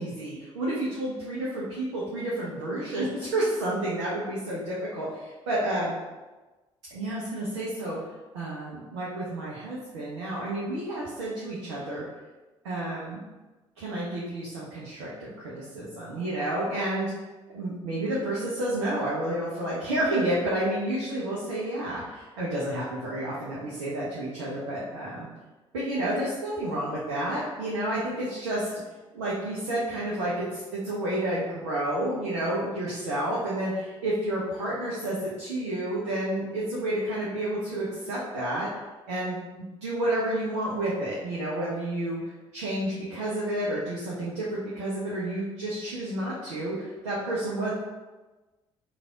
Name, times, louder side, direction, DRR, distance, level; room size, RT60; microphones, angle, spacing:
voice 1, 0.0-5.9 6.9-8.0 8.3-12.0 12.6-13.2 13.8-17.1 17.5-25.3 25.7-28.7 29.1-38.7 39.1-42.2 42.5-47.7, right 1 dB, 75° right, -6 dB, 0.7 m, -30 dB
3.3 x 2.4 x 3.6 m, 1.2 s
figure-of-eight pair, 50°, 15 cm